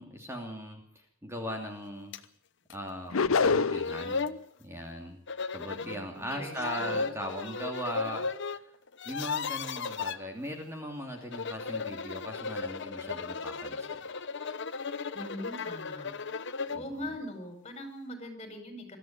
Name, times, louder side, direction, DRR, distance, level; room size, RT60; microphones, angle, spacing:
voice 1, 0.0-2.1 2.7-4.3 4.6-5.2 5.5-8.6 9.0-14.0 16.7-17.1, equal, 15° right, 2 dB, 2.8 m, -39 dB
sound 1, 2.1-2.2 2.7-2.8 3.4-3.5 3.7-4.4 5.3-6.0 6.5-8.6 8.9-10.2 11.2-16.9, left 4 dB, 60° left, 1.1 m, -35 dB
sound 2, 3.1-4.0, left 4 dB, 85° left, 0.8 m, -25 dB
voice 2, 5.8-7.1 15.1-16.1 16.4-16.5 16.7-19.0, left 1 dB, 30° left, 6 dB, 5.4 m, -42 dB
23.0 x 13.5 x 8.9 m, 0.66 s
head